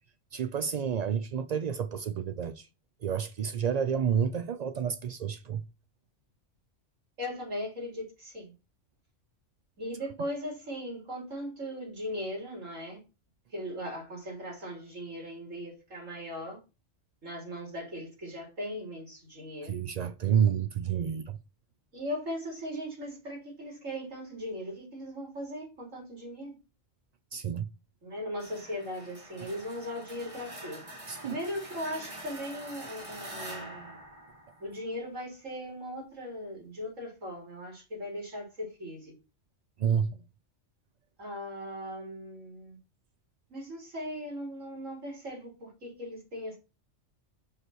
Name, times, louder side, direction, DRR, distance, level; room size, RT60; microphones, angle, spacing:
voice 1, 0.3-2.7 3.0-5.6 19.6-21.4 27.3-27.7 29.4-29.5 31.1-31.4 39.8-40.1, right 8 dB, 65° right, 0.4 m, -29 dB
voice 2, 7.2-8.5 9.8-13.0 13.5-16.6 17.2-19.8 21.9-26.5 28.0-30.8 31.2-34.0 34.6-39.1 41.2-42.8 43.5-46.6, equal, 90° right, 3.9 m, -38 dB
sound 1, 28.4-35.1, right 1 dB, 25° right, 1.6 m, -45 dB
5.9 x 5.4 x 6.2 m
omnidirectional pair, 1.3 m